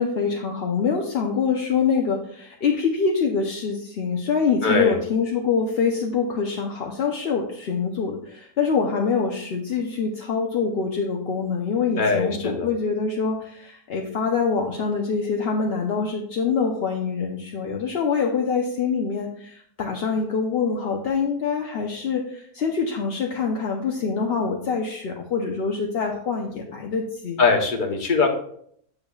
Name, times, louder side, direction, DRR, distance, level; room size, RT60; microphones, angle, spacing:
voice 1, 0.0-27.4, left 5 dB, 55° left, 1 dB, 0.7 m, -25 dB
voice 2, 4.6-5.0 12.0-12.7 27.4-28.3, left 4 dB, 35° left, 2 dB, 1.0 m, -21 dB
8.6 x 6.8 x 2.3 m, 0.66 s
omnidirectional pair, 1.6 m